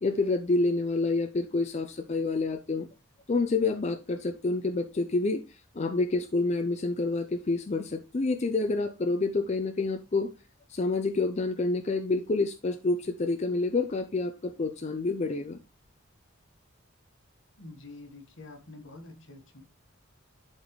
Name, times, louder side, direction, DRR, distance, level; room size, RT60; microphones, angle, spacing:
voice 1, 0.0-2.9 3.3-10.3 10.7-15.6, left 3 dB, 35° left, 0.5 m, -28 dB
voice 2, 17.6-19.6, left 2 dB, 65° left, 1.5 m, -47 dB
11.5 x 4.1 x 3.1 m
head